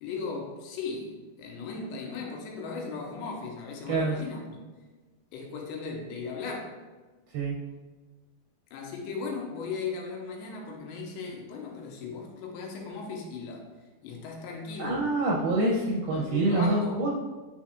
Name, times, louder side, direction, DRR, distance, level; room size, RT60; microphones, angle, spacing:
voice 1, 0.0-4.6 5.3-6.8 8.7-13.7 14.0-15.0 16.1-17.0, left 4 dB, 85° left, 0 dB, 3.0 m, -37 dB
voice 2, 14.8-17.1, right 2 dB, 75° right, -2 dB, 2.4 m, -26 dB
9.2 x 4.3 x 2.4 m, 1.3 s
omnidirectional pair, 4.9 m